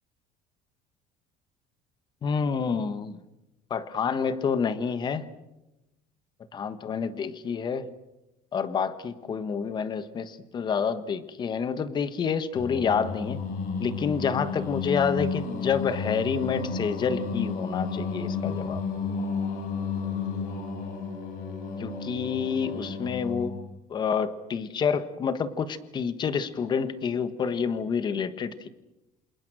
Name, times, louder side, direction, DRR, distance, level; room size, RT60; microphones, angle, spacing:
voice 1, 2.2-3.2 3.7-5.3 6.5-7.9 8.5-13.4 13.8-18.8 21.8-28.7, left 6 dB, 25° left, 12 dB, 1.5 m, -28 dB
Singing, 12.5-23.7, left 5 dB, 60° left, 6.0 m, -32 dB
28.0 x 27.5 x 6.4 m, 0.95 s
cardioid pair, 160°, 16 cm